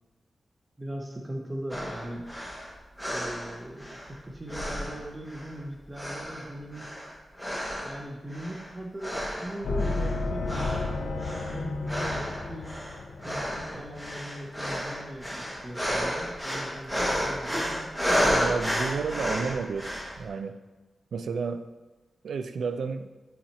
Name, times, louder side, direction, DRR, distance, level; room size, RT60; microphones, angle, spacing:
voice 1, 0.8-2.3 3.1-6.9 7.8-12.8 13.2-18.0, right 1 dB, 20° right, 0 dB, 0.6 m, -40 dB
sound 1, 1.7-4.2 4.5-5.6 5.9-8.0 8.3-8.7 9.0-10.2 10.5-20.2, equal, ahead, 1.1 m, -31 dB
sound 2, 9.6-14.4, left 3 dB, 85° left, 0.5 m, -32 dB
voice 2, 18.2-20.6 21.1-21.7 22.2-23.1, right 5 dB, 90° right, 9 dB, 0.4 m, -32 dB
8.5 x 2.9 x 4.3 m, 1.2 s
wide cardioid pair, 150°, 0 cm